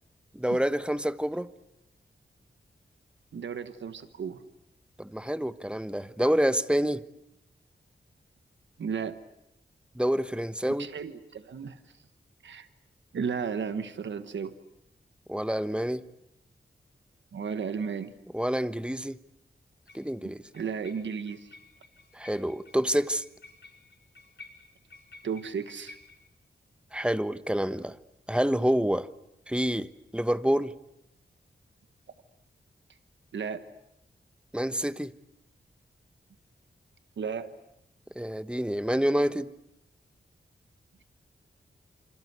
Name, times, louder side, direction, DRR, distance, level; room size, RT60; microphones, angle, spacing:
voice 1, 0.3-1.5 5.0-7.0 9.9-10.9 15.3-16.0 18.3-19.2 19.9-20.4 22.1-23.2 26.9-28.0 28.3-29.1 29.5-30.7 34.5-35.1 38.1-39.5, equal, 5° right, 1.1 m, -27 dB
voice 2, 3.3-4.4 8.8-9.2 10.8-11.8 12.4-12.7 13.1-14.5 17.3-18.1 20.2-21.5 25.2-26.0 33.3-33.6 37.2-37.5, right 6 dB, 90° right, 1.3 m, -34 dB
sound 1, 19.9-20.1 20.5-26.3, left 3 dB, 80° left, 4.8 m, -53 dB
27.5 x 26.0 x 8.1 m
cardioid pair, 70°, 18 cm